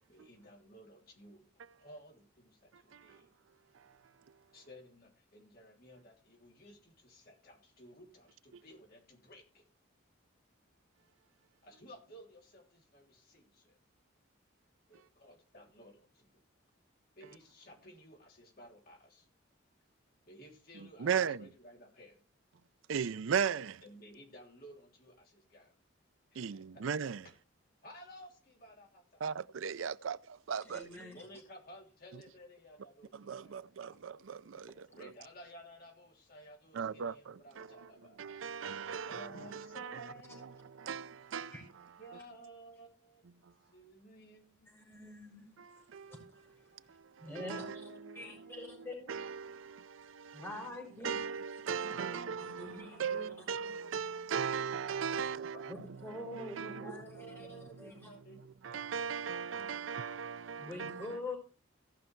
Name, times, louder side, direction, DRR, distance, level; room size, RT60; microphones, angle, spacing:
voice 1, 0.1-1.5 1.8-3.3 4.5-9.6 11.6-13.8 14.9-16.4 17.1-19.3 20.2-22.3 23.8-25.7 26.3-26.8 27.8-29.5 30.9-33.1 33.4-33.7 34.9-38.2 39.1-41.0 42.0-43.2 43.7-44.8 47.4-49.5 51.8-52.8 53.1-54.2 55.1-55.8 56.7-58.4, equal, 50° left, 3.2 m, -55 dB
voice 2, 21.0-21.5 22.9-23.8 26.4-27.2 29.2-30.9 33.1-35.1 36.7-37.9 38.2-40.0 40.8-41.5 45.6-46.2 46.9-50.4 51.0-55.7 56.4-56.9 58.6-61.1, right 7 dB, 75° right, 0.5 m, -38 dB
voice 3, 30.6-31.3 41.5-41.6 44.7-45.5 46.1-47.7 48.1-48.9 50.3-51.2 52.4-53.5 55.7-58.1 60.6-61.4, left 2 dB, 10° left, 4.3 m, -46 dB
16.5 x 5.6 x 4.5 m
head